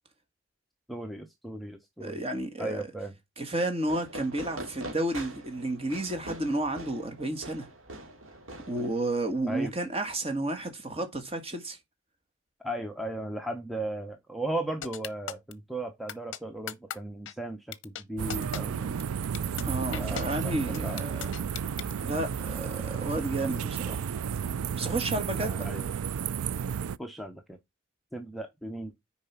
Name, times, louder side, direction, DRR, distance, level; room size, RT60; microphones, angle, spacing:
voice 1, 0.9-2.2 2.6-3.1 9.5-9.7 12.6-18.9 20.0-21.0 25.2-25.8 27.0-27.6 28.1-28.9, right 1 dB, ahead, 0.7 m, -36 dB
voice 2, 2.0-2.9 3.4-7.7 8.7-11.8 19.6-21.3 22.0-24.1 24.8-25.7, right 1 dB, 25° right, 1.7 m, -31 dB
Fireworks, 3.8-9.4, right 1 dB, 70° right, 2.6 m, -43 dB
sound 1, 14.8-15.5 16.1-16.4 16.7-17.0 17.3-17.4 17.7-18.0 18.3-18.6 19.0-19.1 19.3-19.6 19.9-20.2 20.7-21.9, left 9 dB, 60° left, 0.7 m, -36 dB
sound 2, 18.2-27.0, right 7 dB, 85° right, 0.4 m, -32 dB
6.6 x 4.8 x 5.8 m
head